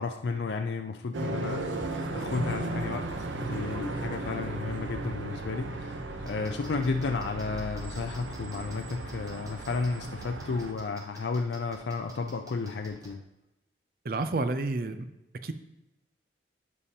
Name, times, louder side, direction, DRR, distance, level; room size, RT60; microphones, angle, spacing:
voice 1, 0.0-13.2, left 4 dB, 70° left, 5 dB, 0.4 m, -33 dB
sound 1, 1.1-10.7, right 2 dB, 85° right, 0.8 m, -35 dB
sound 2, 6.3-13.1, right 1 dB, 20° right, 0.9 m, -51 dB
voice 2, 14.0-15.1 15.4-15.5, right 2 dB, 50° right, 10 dB, 0.5 m, -30 dB
11.0 x 5.2 x 2.8 m, 0.97 s
head